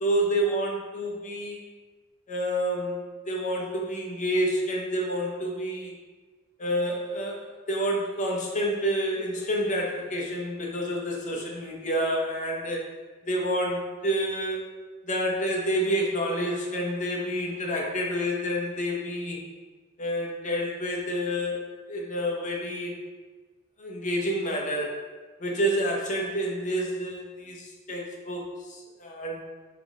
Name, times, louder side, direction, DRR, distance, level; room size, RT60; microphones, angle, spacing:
voice 1, 0.0-1.6 2.3-5.9 6.6-12.9 13.2-14.7 15.0-19.4 20.0-21.6 21.9-23.0 23.8-25.0 25.4-29.4, equal, 35° left, -1 dB, 0.8 m, -28 dB
3.7 x 3.7 x 3.6 m, 1.4 s
head